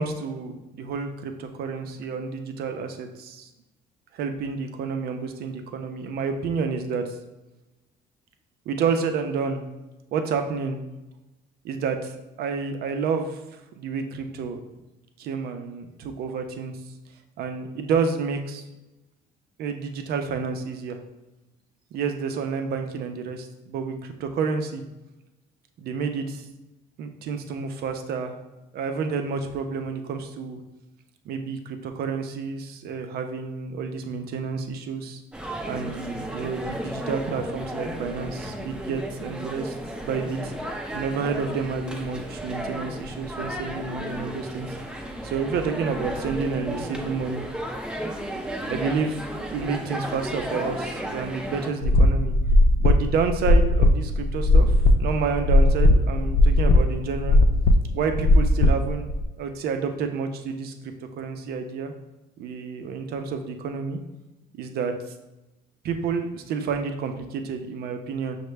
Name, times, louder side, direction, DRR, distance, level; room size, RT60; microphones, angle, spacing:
voice 1, 0.0-3.5 4.1-7.1 8.7-9.6 10.1-10.8 11.6-12.1 12.4-13.4 13.8-14.6 15.2-16.8 17.4-18.6 19.6-21.0 21.9-24.8 25.8-26.4 27.0-28.4 28.7-30.6 31.3-35.2 35.7-39.7 40.0-40.5 40.9-44.7 45.2-47.5 48.7-52.3 52.8-57.4 57.9-59.1 59.4-61.9 62.4-64.0 64.6-64.9 65.8-68.4, right 5 dB, 65° right, 6 dB, 0.5 m, -29 dB
sound 1, 35.3-51.7, right 1 dB, 5° right, 0.5 m, -34 dB
sound 2, 51.8-59.2, left 2 dB, 65° left, 0.4 m, -18 dB
5.6 x 2.2 x 3.2 m, 1.0 s
cardioid pair, 110°, 17 cm